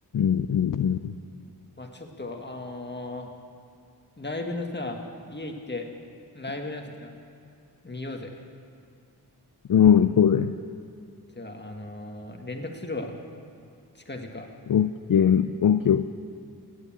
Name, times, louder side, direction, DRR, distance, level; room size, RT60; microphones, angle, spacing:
voice 1, 0.1-1.1 9.7-10.5 14.7-16.1, left 8 dB, 55° left, 10 dB, 0.5 m, -20 dB
voice 2, 1.8-3.3 4.2-5.0 5.3-5.9 6.3-7.2 7.8-8.4 11.3-13.2 13.9-14.5, left 2 dB, 25° left, 3 dB, 1.7 m, -36 dB
16.0 x 9.8 x 7.4 m, 2.4 s
wide cardioid pair, 55°, 38 cm